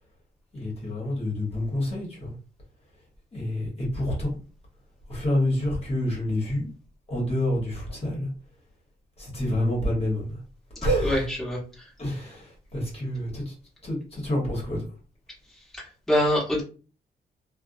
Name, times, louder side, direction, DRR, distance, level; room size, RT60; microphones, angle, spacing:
voice 1, 0.5-2.3 3.3-4.4 5.1-6.7 7.1-8.3 9.2-10.4 10.8-11.2 12.0-13.5 13.8-14.8, left 1 dB, 35° left, -3 dB, 1.1 m, -28 dB
voice 2, 11.0-11.6 16.1-16.6, left 1 dB, ahead, -5 dB, 1.2 m, -23 dB
2.6 x 2.1 x 2.5 m, 0.36 s
cardioid pair, 105°, 17 cm